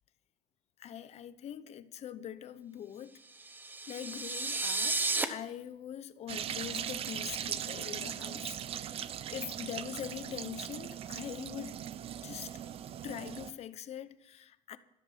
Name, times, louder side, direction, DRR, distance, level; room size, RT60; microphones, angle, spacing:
voice 1, 0.8-3.2 3.9-9.0 9.3-11.8 12.2-12.5 13.0-14.8, left 10 dB, 40° left, 0.8 m, -43 dB
sound 1, 3.4-5.2, right 3 dB, 10° right, 0.9 m, -33 dB
sound 2, 6.3-13.5, right 10 dB, 35° right, 0.6 m, -39 dB
13.5 x 13.5 x 5.7 m
cardioid pair, 170°, 17 cm